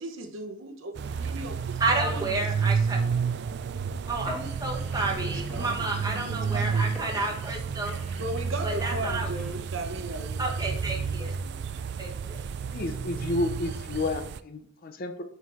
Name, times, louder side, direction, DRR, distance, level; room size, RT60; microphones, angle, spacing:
voice 1, 0.0-3.1 5.2-5.8 6.3-6.9 8.1-10.5 10.9-11.1 11.4-11.6, right 2 dB, 70° right, 4 dB, 0.9 m, -37 dB
sound 1, 1.0-14.4, right 5 dB, 55° right, 0.3 m, -31 dB
voice 2, 1.8-3.0 4.1-8.2 8.6-9.3 10.4-11.3 12.0-12.4, right 3 dB, 20° right, 0 dB, 1.2 m, -31 dB
sound 2, 4.1-9.5, equal, ahead, 2.2 m, -44 dB
voice 3, 12.6-15.2, left 2 dB, 45° left, 8 dB, 0.6 m, -31 dB
6.0 x 4.6 x 3.5 m, 0.67 s
head